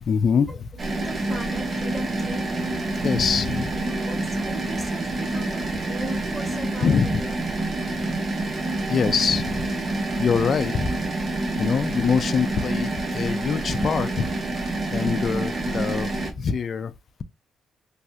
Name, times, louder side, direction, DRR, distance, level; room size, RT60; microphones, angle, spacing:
voice 1, 0.0-0.7 2.9-3.8 6.8-7.6 8.6-11.1 11.6-14.3 14.9-17.2, left 6 dB, 50° left, 0.4 m, -25 dB
sound 1, 0.8-16.3, right 2 dB, 40° right, 0.8 m, -27 dB
voice 2, 0.9-2.5 3.9-6.9, right 1 dB, 15° right, 1.4 m, -37 dB
3.2 x 2.2 x 2.7 m
cardioid pair, 90°, 0 cm